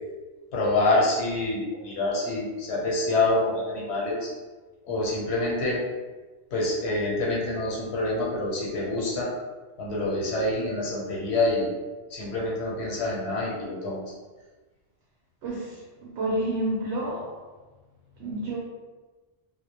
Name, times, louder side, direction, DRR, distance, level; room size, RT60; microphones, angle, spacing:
voice 1, 0.5-4.3 4.8-5.8 6.5-9.3 9.8-11.7 12.1-14.0, left 2 dB, 85° left, -4 dB, 1.0 m, -26 dB
voice 2, 15.4-17.3 18.2-18.6, right 1 dB, 85° right, -4 dB, 0.8 m, -29 dB
2.1 x 2.1 x 2.8 m, 1.3 s
omnidirectional pair, 1.1 m